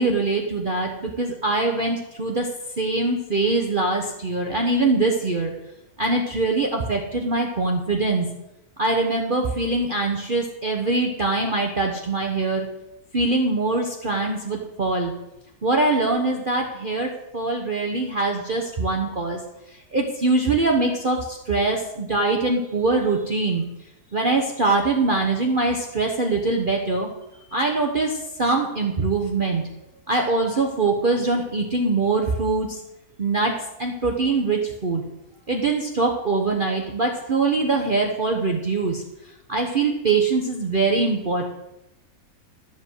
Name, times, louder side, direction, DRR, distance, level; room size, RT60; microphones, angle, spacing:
voice 1, 0.0-2.5 2.8-5.5 6.0-8.3 8.8-12.7 13.1-15.1 15.6-19.4 19.9-23.6 24.1-27.1 27.5-29.6 30.1-32.8 33.2-33.5 33.8-35.0 35.5-39.0 39.5-41.5, right 3 dB, 35° right, 1 dB, 1.0 m, -23 dB
12.5 x 5.0 x 8.0 m, 0.90 s
omnidirectional pair, 1.8 m